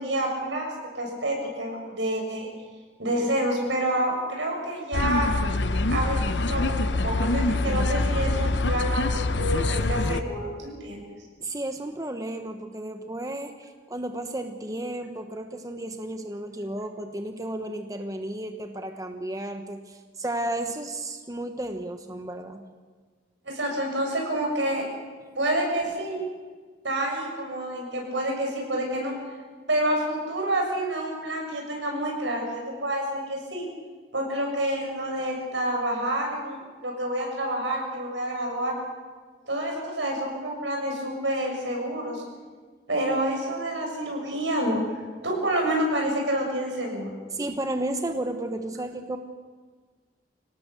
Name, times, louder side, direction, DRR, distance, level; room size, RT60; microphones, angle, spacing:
voice 1, 0.0-2.5 3.0-5.3 5.9-11.1 23.4-24.9 25.3-26.2 26.8-29.1 29.7-33.7 34.1-38.8 39.5-42.2 42.9-44.8 45.2-47.1, right 1 dB, 85° right, 1 dB, 6.7 m, -28 dB
sound 1, 4.9-10.2, left 2 dB, 75° left, 0.9 m, -25 dB
voice 2, 11.4-22.7 47.3-49.2, right 1 dB, 20° right, 6 dB, 1.0 m, -33 dB
25.5 x 18.0 x 6.8 m, 1.5 s
head